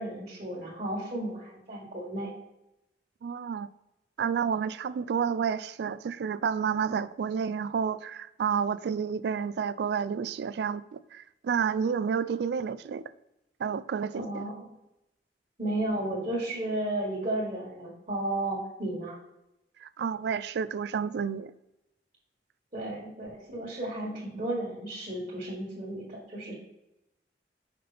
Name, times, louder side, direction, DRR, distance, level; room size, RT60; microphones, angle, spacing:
voice 1, 0.0-2.3 14.1-14.7 15.6-19.2 22.7-26.5, right 1 dB, 40° right, 1.8 m, -33 dB
voice 2, 3.2-3.7 4.2-13.0 13.6-14.4 19.8-21.5, right 6 dB, 65° right, 0.3 m, -30 dB
5.7 x 5.7 x 3.3 m
head